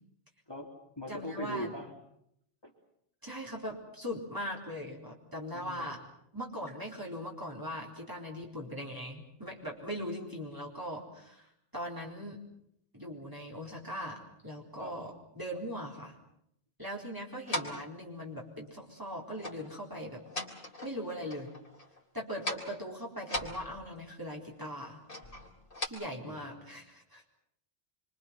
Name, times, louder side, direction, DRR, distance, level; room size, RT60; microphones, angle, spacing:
voice 1, 0.5-1.9 2.6-2.7 5.5-6.0 14.8-15.0 26.3-26.8, equal, 25° left, -1 dB, 3.5 m, -41 dB
voice 2, 1.1-1.7 3.2-6.0 6.3-12.4 12.9-16.2 16.8-20.2 20.8-21.5 22.1-25.0 25.8-27.2, equal, 20° right, -2 dB, 4.3 m, -40 dB
sound 1, 17.5-17.9 19.4-19.7 20.0-21.0 21.3-22.0 22.3-22.8 23.2-24.1 25.1-25.9, left 1 dB, 55° left, 3.7 m, -39 dB
27.0 x 24.0 x 5.9 m, 0.74 s
omnidirectional pair, 1.1 m